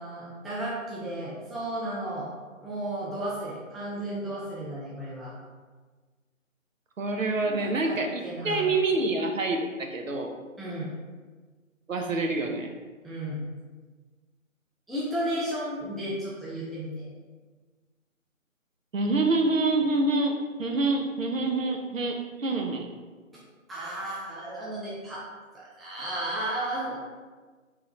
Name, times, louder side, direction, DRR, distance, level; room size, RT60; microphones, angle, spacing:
voice 1, 0.0-2.3 2.6-5.4 7.3-8.7 10.6-10.9 13.0-13.4 14.9-17.1 23.3-23.4 23.7-25.2 25.5-27.0, right 1 dB, ahead, -7 dB, 0.4 m, -34 dB
voice 2, 7.0-10.3 11.9-12.7 18.9-22.9, right 2 dB, 65° right, 3 dB, 0.7 m, -26 dB
3.6 x 3.3 x 3.0 m, 1.4 s
figure-of-eight pair, 160°, 42 cm